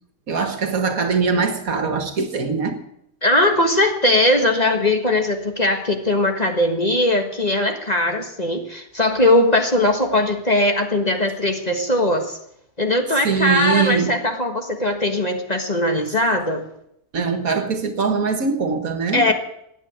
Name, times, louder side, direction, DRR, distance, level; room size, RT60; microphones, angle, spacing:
voice 1, 0.3-2.8 13.2-14.2 17.1-19.3, right 5 dB, 70° right, 2.1 m, -22 dB
voice 2, 3.2-12.4 12.8-16.7 19.1-19.3, left 1 dB, 30° left, 1.6 m, -20 dB
15.5 x 9.6 x 9.4 m
omnidirectional pair, 1.6 m